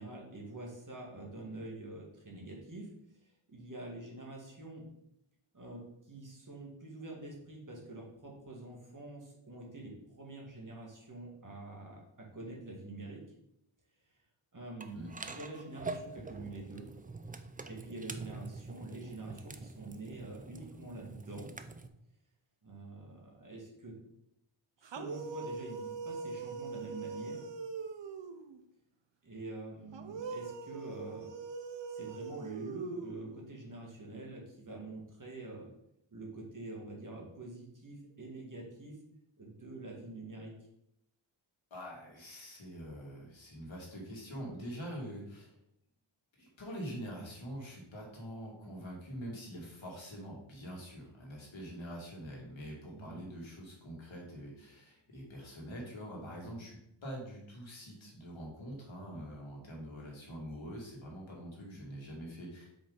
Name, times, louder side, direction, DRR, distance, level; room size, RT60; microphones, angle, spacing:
voice 1, 0.0-2.9 3.5-4.8 5.5-5.8 6.1-13.2 14.5-16.9 17.7-21.5 22.6-23.9 24.8-27.4 29.2-31.3 31.9-35.7 36.1-39.0 39.4-40.5 52.9-53.2, right 2 dB, 40° right, -1 dB, 1.8 m, -46 dB
sound 1, 14.8-21.9, right 3 dB, 20° right, 0.4 m, -45 dB
sound 2, 24.8-28.6 29.9-33.5, right 5 dB, 60° right, 0.7 m, -42 dB
voice 2, 41.7-45.5 46.4-62.7, equal, 65° left, -2 dB, 2.2 m, -45 dB
5.2 x 5.0 x 3.9 m, 0.78 s
wide cardioid pair, 80°, 50 cm